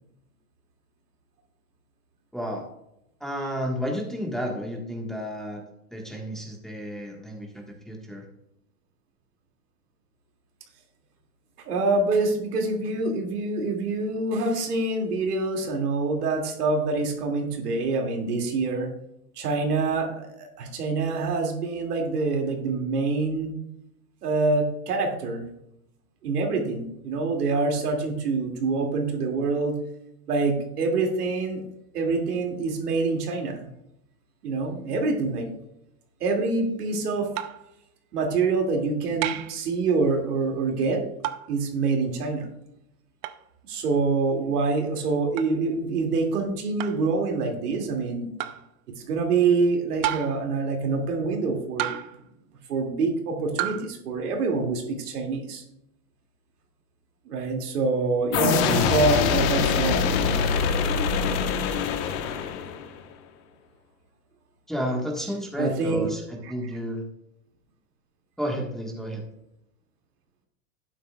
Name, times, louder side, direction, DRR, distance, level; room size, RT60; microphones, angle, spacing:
voice 1, 2.3-2.7 3.2-5.6 5.9-8.2 58.6-58.9 64.7-67.0 68.4-69.2, equal, ahead, -1 dB, 1.4 m, -31 dB
voice 2, 11.7-18.9 19.4-23.6 24.2-25.4 26.2-29.8 30.3-31.6 31.9-33.7 34.4-35.5 36.2-37.3 38.1-41.0 41.5-42.5 43.7-48.3 49.1-52.0 52.7-55.6 57.3-60.1 65.6-66.1 66.4-66.5, right 3 dB, 85° right, 2 dB, 2.5 m, -26 dB
sound 1, 37.3-37.7 39.2-39.6 41.2-41.5 43.2-43.4 45.4-45.5 46.8-47.1 48.4-48.7 50.0-50.5 51.8-52.2 53.6-53.9, right 13 dB, 40° right, 0.6 m, -30 dB
sound 2, 58.3-63.0, left 6 dB, 50° left, 1.2 m, -24 dB
11.5 x 9.2 x 2.3 m, 0.82 s
hypercardioid pair, 130°, 45 cm